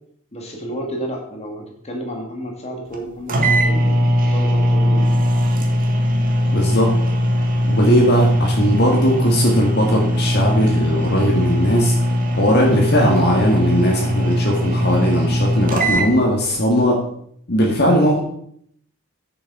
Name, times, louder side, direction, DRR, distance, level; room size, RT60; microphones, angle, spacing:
voice 1, 0.3-5.1, equal, 30° left, 1 dB, 2.1 m, -31 dB
sound 1, 2.9-3.0 3.3-16.1, equal, 40° right, 1.5 m, -19 dB
voice 2, 6.5-7.0 7.7-11.9 12.3-17.0 17.5-18.2, equal, 50° left, -1 dB, 1.7 m, -18 dB
9.1 x 7.0 x 4.8 m, 0.66 s
head